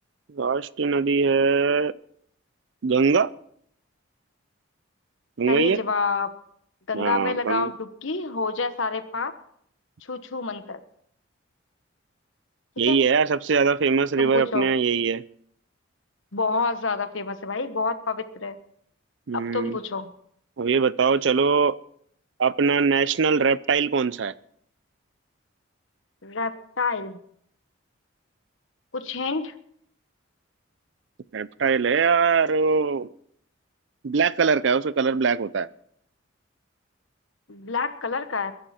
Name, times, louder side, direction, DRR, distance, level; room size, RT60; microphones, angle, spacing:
voice 1, 0.3-1.9 2.8-3.3 5.4-5.8 6.9-7.7 12.8-15.2 19.3-19.8 20.6-21.8 22.4-24.3 31.3-33.1 34.0-35.7, right 5 dB, 60° right, 19 dB, 0.5 m, -22 dB
voice 2, 5.5-6.3 6.9-9.3 10.1-10.8 12.8-13.0 14.2-14.7 16.3-18.6 19.3-20.1 26.2-27.2 28.9-29.5 37.5-38.5, left 4 dB, 70° left, 11 dB, 1.2 m, -28 dB
22.5 x 11.5 x 4.4 m, 0.68 s
head